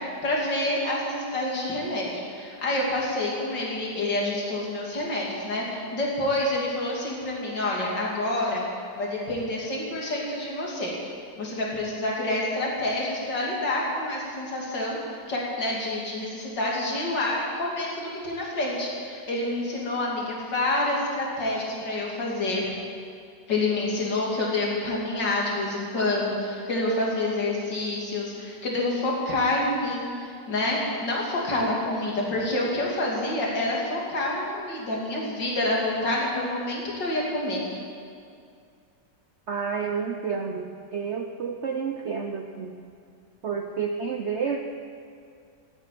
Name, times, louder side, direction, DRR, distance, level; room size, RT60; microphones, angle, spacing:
voice 1, 0.0-8.6 8.9-10.9 11.4-22.6 23.5-37.6, left 2 dB, 80° left, -3 dB, 3.4 m, -28 dB
voice 2, 39.5-42.7 43.4-44.6, right 6 dB, 50° right, 4 dB, 0.9 m, -30 dB
16.0 x 8.9 x 9.3 m, 2.3 s
omnidirectional pair, 1.9 m